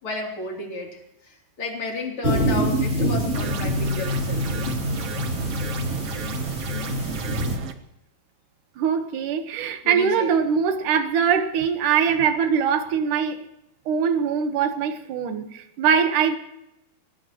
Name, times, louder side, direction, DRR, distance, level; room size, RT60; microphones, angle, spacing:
voice 1, 0.0-5.0 9.8-10.3, left 3 dB, 35° left, 0 dB, 3.8 m, -33 dB
sound 1, 2.2-7.6, equal, 20° right, 3.5 m, -25 dB
sound 2, 3.3-7.7, right 7 dB, 85° right, 1.3 m, -33 dB
voice 2, 8.8-13.4 13.9-16.4, right 7 dB, 65° right, 8 dB, 2.5 m, -22 dB
23.5 x 18.5 x 3.1 m, 0.86 s
omnidirectional pair, 4.4 m